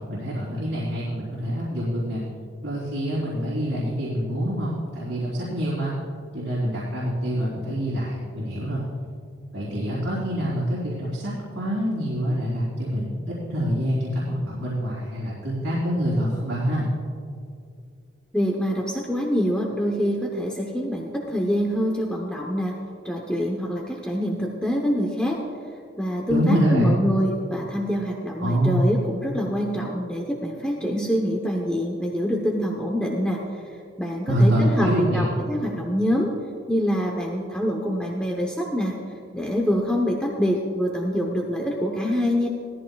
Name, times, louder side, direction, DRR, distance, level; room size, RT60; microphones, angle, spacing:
voice 1, 0.1-2.2 2.6-5.9 6.3-8.8 9.5-16.9 26.3-26.9 28.4-28.8 34.3-35.3, equal, 80° right, -7 dB, 3.3 m, -25 dB
voice 2, 18.3-22.7 23.0-25.4 26.0-33.4 34.0-36.3 36.7-38.9 39.3-42.5, equal, 5° left, -1 dB, 0.8 m, -25 dB
17.5 x 14.0 x 2.3 m, 2.4 s
head